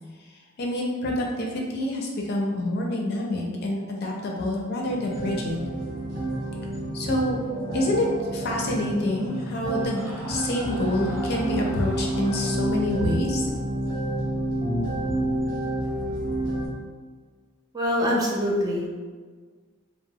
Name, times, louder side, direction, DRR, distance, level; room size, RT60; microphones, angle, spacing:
voice 1, 0.6-5.6 6.9-7.4 7.7-8.1 8.3-13.5, left 1 dB, 50° left, -1 dB, 0.4 m, -27 dB
sound 1, 4.9-16.7, right 1 dB, 65° right, 1.0 m, -29 dB
Screaming, 8.2-12.6, equal, 90° right, 0.6 m, -42 dB
voice 2, 17.7-18.9, equal, 15° right, -4 dB, 0.4 m, -24 dB
2.9 x 2.1 x 2.7 m, 1.5 s
head